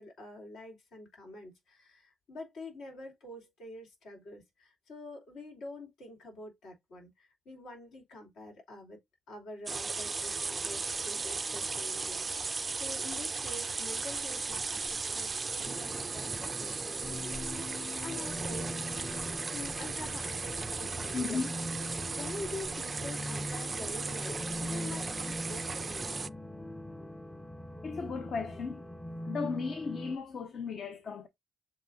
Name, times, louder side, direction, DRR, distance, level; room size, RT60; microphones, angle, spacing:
voice 1, 0.0-9.0 9.3-18.8 19.5-21.4 22.1-26.3, left 2 dB, 75° left, 2.6 m, -46 dB
sound 1, 9.7-26.3, right 4 dB, 30° right, 0.3 m, -36 dB
sound 2, 17.0-30.2, left 1 dB, 10° left, 0.6 m, -42 dB
voice 2, 21.1-21.5 27.8-28.8 29.2-31.3, left 5 dB, 55° left, 0.6 m, -35 dB
7.1 x 2.8 x 2.5 m
cardioid pair, 90°, 0 cm